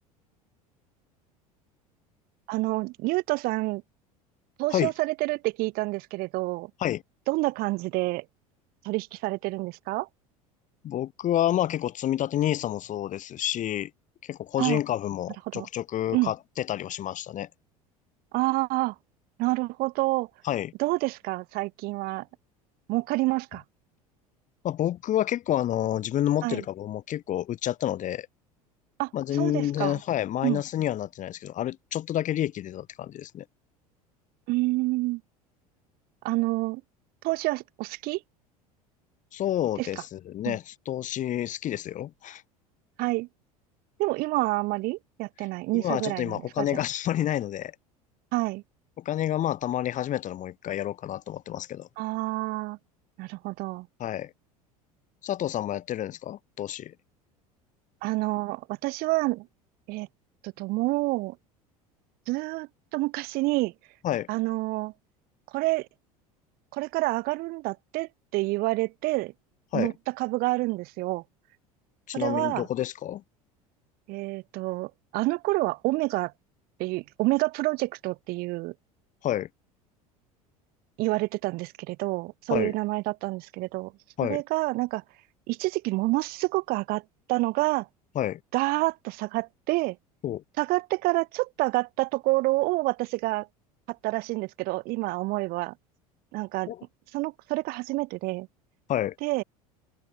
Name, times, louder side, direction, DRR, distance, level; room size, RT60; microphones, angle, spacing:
voice 1, 2.5-3.8 4.6-6.7 7.3-8.2 8.8-10.1 14.6-14.8 15.5-15.7 16.1-16.3 18.3-18.9 19.4-20.3 20.8-22.3 22.9-23.6 26.4-26.6 29.0-30.0 30.4-30.6 34.5-35.2 36.2-36.8 37.2-38.2 39.8-39.9 40.5-40.6 43.0-43.3 44.0-46.7 48.3-48.6 52.0-52.8 53.2-53.9 58.0-59.5 59.9-60.1 60.4-61.4 62.3-63.7 64.3-64.9 65.5-65.9 66.7-69.3 69.7-71.2 72.1-72.7 74.1-76.3 76.8-78.7 81.0-83.9 84.2-85.0 85.5-87.0 87.3-87.9 88.5-90.0 90.6-93.5 93.9-95.7 96.3-96.7 97.1-98.5 99.2-99.4, right 22 dB, 50° right, 2.0 m, -28 dB
voice 2, 10.8-13.9 14.2-17.5 20.4-20.7 24.6-28.3 29.1-33.4 39.3-42.4 45.7-47.7 49.0-51.9 54.0-54.3 55.2-56.9 64.0-64.3 69.7-69.9 72.1-73.2 79.2-79.5 82.5-82.7 84.2-84.4 88.2-88.4 90.2-90.4 96.7-96.8 98.9-99.1, left 12 dB, 40° left, 4.0 m, -29 dB
open air
figure-of-eight pair, 70°, 19 cm